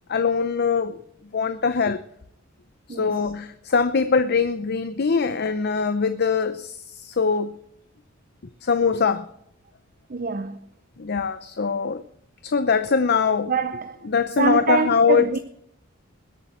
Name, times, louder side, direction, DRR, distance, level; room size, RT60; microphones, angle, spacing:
voice 1, 0.1-1.0 1.3-2.0 2.9-7.6 8.6-9.3 11.0-12.0 12.4-13.5 14.0-15.4, left 5 dB, 55° left, 0.7 m, -22 dB
voice 2, 10.1-10.6 13.5-13.9 14.4-15.4, right 5 dB, 45° right, 0.7 m, -24 dB
21.0 x 8.4 x 4.4 m
head